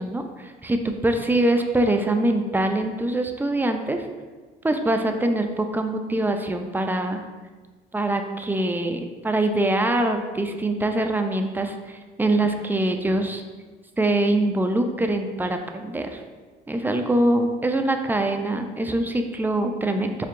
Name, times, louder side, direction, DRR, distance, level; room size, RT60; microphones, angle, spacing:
voice 1, 0.0-4.1 4.6-7.2 7.9-13.4 14.0-16.2 16.7-20.2, right 1 dB, 10° right, 5 dB, 0.4 m, -24 dB
4.4 x 2.7 x 2.5 m, 1.4 s
supercardioid pair, 70°, 19 cm